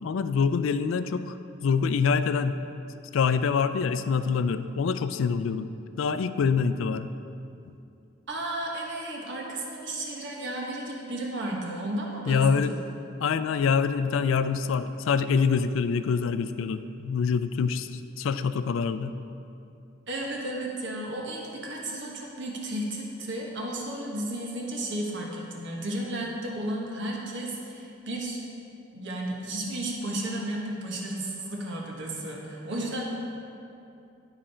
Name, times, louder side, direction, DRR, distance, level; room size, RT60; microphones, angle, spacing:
voice 1, 0.0-1.4 1.6-2.6 3.1-5.7 6.0-7.1 12.3-12.7 13.2-19.2, left 5 dB, 65° left, 11 dB, 0.3 m, -25 dB
voice 2, 8.3-12.8 20.1-28.4 28.9-33.0, right 1 dB, 60° right, -1 dB, 1.3 m, -33 dB
11.5 x 5.0 x 4.3 m, 2.7 s
head